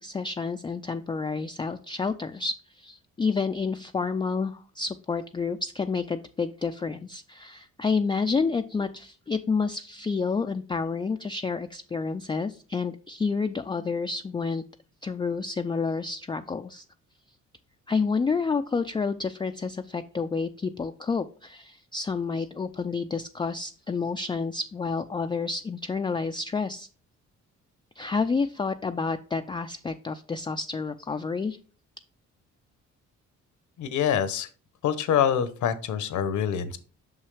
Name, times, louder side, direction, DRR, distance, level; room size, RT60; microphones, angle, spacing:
voice 1, 0.0-14.6 15.0-16.8 17.9-26.9 28.0-31.6, left 4 dB, 15° left, 7 dB, 0.3 m, -29 dB
voice 2, 33.8-34.5 34.8-36.8, left 8 dB, 70° left, 12 dB, 0.9 m, -25 dB
6.1 x 5.6 x 3.2 m, 0.40 s
cardioid pair, 90°, 30 cm